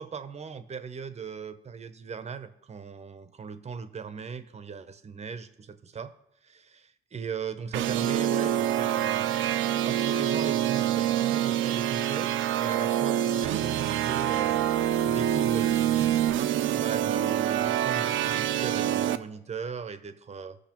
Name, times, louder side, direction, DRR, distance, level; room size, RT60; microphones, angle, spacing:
voice 1, 0.0-6.1 6.4-9.3 9.8-14.7 15.0-16.2 16.7-20.6, right 6 dB, 35° right, 11 dB, 0.7 m, -38 dB
sound 1, 7.7-19.2, right 11 dB, 75° right, 0.4 m, -26 dB
15.5 x 6.4 x 2.9 m, 0.79 s
cardioid pair, 90°, 20 cm